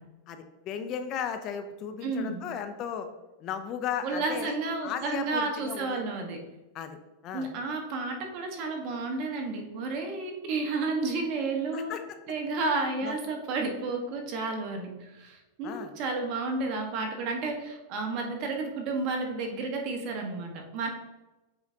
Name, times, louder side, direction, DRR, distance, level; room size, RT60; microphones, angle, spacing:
voice 1, 0.3-3.1 3.4-4.6 4.8-6.0 6.7-7.0 7.2-7.5 11.7-12.0 13.0-13.1 15.6-15.9, left 8 dB, 40° left, 8 dB, 0.6 m, -35 dB
voice 2, 2.0-2.4 4.0-6.4 7.3-11.9 12.3-20.9, right 3 dB, 50° right, 2 dB, 1.4 m, -31 dB
7.8 x 4.8 x 2.8 m, 1.0 s
hypercardioid pair, 120°, 0 cm